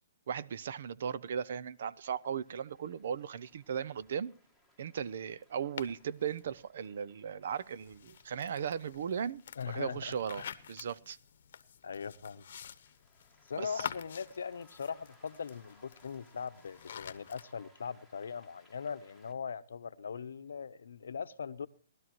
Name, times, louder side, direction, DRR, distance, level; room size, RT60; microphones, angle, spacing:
voice 1, 0.3-4.3 4.8-9.4 9.7-11.2 13.6-13.9, right 7 dB, 55° right, 0.6 m, -37 dB
sound 1, 0.5-19.3, left 1 dB, 5° right, 1.7 m, -67 dB
sound 2, 5.8-6.4 7.4-17.5, left 8 dB, 55° left, 0.9 m, -48 dB
voice 2, 9.6-10.5 11.8-12.5 13.5-21.7, left 6 dB, 85° left, 0.8 m, -40 dB
19.0 x 12.5 x 3.0 m
hypercardioid pair, 165°, 0 cm